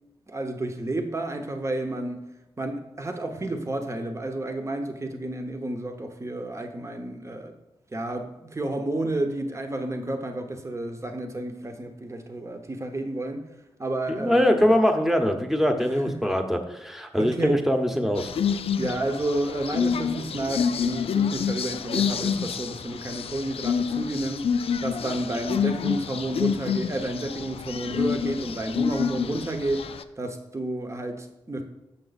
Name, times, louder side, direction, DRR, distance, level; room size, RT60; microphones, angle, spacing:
voice 1, 0.3-2.2 2.6-7.5 7.9-13.4 13.8-14.7 15.9-16.2 17.2-17.6 18.8-24.5 24.8-29.9 30.2-31.6, right 1 dB, 30° right, 5 dB, 0.9 m, -31 dB
voice 2, 14.1-18.3, equal, 5° right, 5 dB, 0.9 m, -23 dB
sound 1, 18.2-30.0, left 7 dB, 75° left, 0.4 m, -28 dB
6.8 x 5.7 x 4.1 m, 0.96 s
cardioid pair, 70°, 10 cm